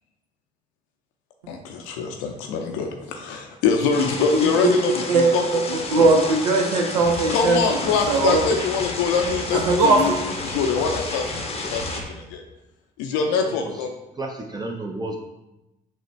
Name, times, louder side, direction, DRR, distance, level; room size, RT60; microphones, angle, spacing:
voice 1, 1.5-6.1 7.3-12.4 13.0-13.9, left 5 dB, 75° left, 3 dB, 0.5 m, -24 dB
sound 1, 3.9-12.0, left 3 dB, 30° left, 0.7 m, -32 dB
voice 2, 5.5-7.6 8.1-8.4 9.5-10.2, right 3 dB, 90° right, 3 dB, 0.5 m, -19 dB
sound 2, 7.0-12.0, equal, 50° right, 1.5 m, -36 dB
voice 3, 14.2-15.2, right 2 dB, 20° right, 1 dB, 0.6 m, -32 dB
5.9 x 2.1 x 3.1 m, 0.95 s
hypercardioid pair, 45°, 20 cm